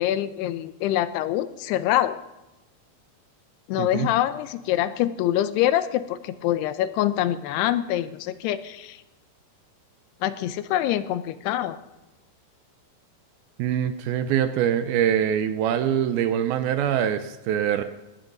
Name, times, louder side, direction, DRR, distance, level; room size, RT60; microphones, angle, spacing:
voice 1, 0.0-2.2 3.7-9.0 10.2-11.8, left 12 dB, 85° left, 13 dB, 2.7 m, -25 dB
voice 2, 3.8-4.1 13.6-17.8, right 9 dB, 75° right, 10 dB, 2.4 m, -24 dB
19.0 x 13.0 x 4.0 m, 1.0 s
omnidirectional pair, 4.8 m